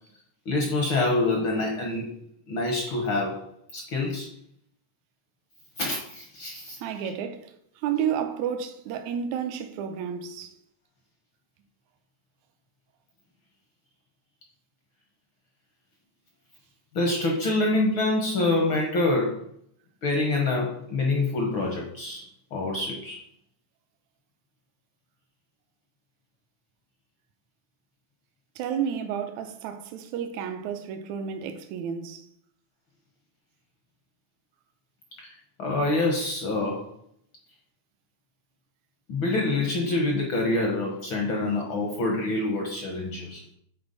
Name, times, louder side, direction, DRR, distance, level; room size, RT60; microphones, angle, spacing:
voice 1, 0.4-2.2 2.5-3.4 3.7-4.3 5.8-6.8 16.9-19.5 20.0-23.2 35.6-36.9 39.1-43.4, left 2 dB, 65° left, 1.2 m, -26 dB
voice 2, 6.8-7.5 7.8-10.5 28.6-32.2, right 8 dB, 80° right, 2.0 m, -31 dB
8.8 x 4.4 x 4.0 m
omnidirectional pair, 3.4 m